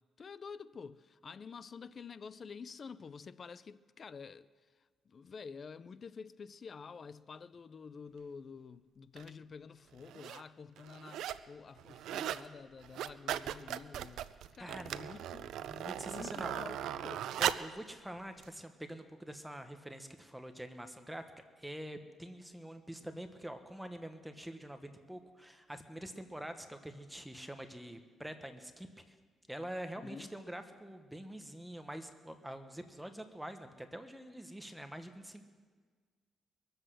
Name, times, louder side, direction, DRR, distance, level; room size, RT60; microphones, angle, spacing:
voice 1, 0.2-4.5 5.1-14.3 14.5-15.5 16.1-17.3 30.0-30.3, left 5 dB, 45° left, 0.5 m, -49 dB
sound 1, 9.2-9.3 10.0-10.4 10.8-11.5 11.8-12.5 12.8-17.8 18.4-18.5, right 11 dB, 80° right, 0.4 m, -38 dB
voice 2, 14.6-14.9 15.6-16.5 17.4-21.2 21.6-29.2 29.5-35.4, right 1 dB, 5° right, 1.1 m, -45 dB
22.5 x 7.9 x 6.3 m
cardioid pair, 90°, 0 cm